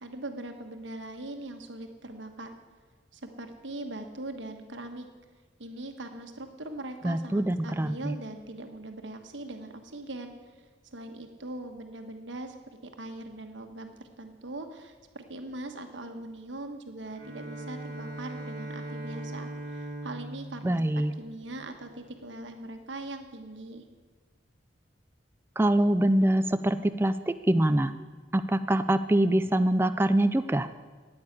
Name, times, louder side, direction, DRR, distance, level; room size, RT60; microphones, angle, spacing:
voice 1, 0.0-2.5 3.1-5.1 5.6-10.3 10.9-20.8 21.2-23.8, right 2 dB, 85° right, 6 dB, 1.3 m, -41 dB
voice 2, 7.0-8.1 20.6-21.1 25.6-27.9 28.3-30.7, right 1 dB, 15° right, 10 dB, 0.3 m, -24 dB
Bowed string instrument, 17.1-22.0, right 1 dB, 50° right, 1.7 m, -40 dB
9.8 x 8.7 x 9.5 m, 1.4 s
head